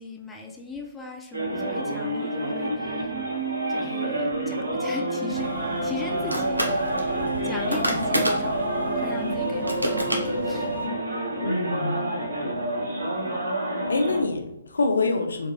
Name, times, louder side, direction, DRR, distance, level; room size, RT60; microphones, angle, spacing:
voice 1, 0.0-3.1 3.7-8.6 8.9-10.7, left 3 dB, 10° left, 0.5 m, -38 dB
sound 1, 1.3-14.2, right 1 dB, 65° right, 1.4 m, -28 dB
sound 2, 5.3-10.9, equal, 85° right, 0.8 m, -31 dB
voice 2, 11.4-12.1 13.9-15.5, left 3 dB, 70° left, 0.6 m, -25 dB
4.4 x 2.6 x 3.1 m
figure-of-eight pair, 125°, 0 cm